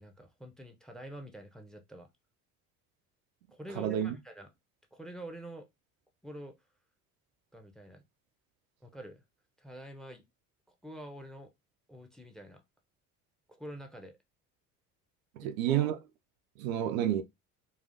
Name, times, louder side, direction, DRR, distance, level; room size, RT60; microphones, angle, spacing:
voice 1, 0.0-2.1 3.5-4.5 4.9-5.7 6.2-6.5 7.5-8.0 8.8-9.2 9.6-10.2 10.8-11.5 11.9-12.6 13.5-14.2 15.4-15.9, right 1 dB, ahead, 0.7 m, -47 dB
voice 2, 3.8-4.1 15.4-16.0 16.6-17.2, right 11 dB, 65° right, 0.5 m, -29 dB
3.9 x 2.4 x 2.5 m
figure-of-eight pair, 55°, 45 cm